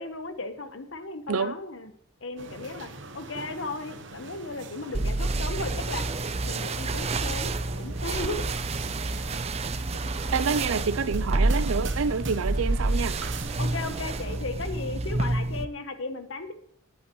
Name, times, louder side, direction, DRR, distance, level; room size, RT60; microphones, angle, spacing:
voice 1, 0.0-1.9 2.2-8.5 9.7-10.0 13.6-16.5, left 3 dB, 65° left, 1.1 m, -36 dB
sound 1, 2.4-14.4, right 3 dB, 60° right, 1.0 m, -43 dB
sound 2, 4.9-15.6, right 2 dB, 30° right, 0.5 m, -28 dB
voice 2, 10.3-13.2, right 5 dB, 80° right, 0.5 m, -27 dB
20.0 x 8.7 x 3.1 m
head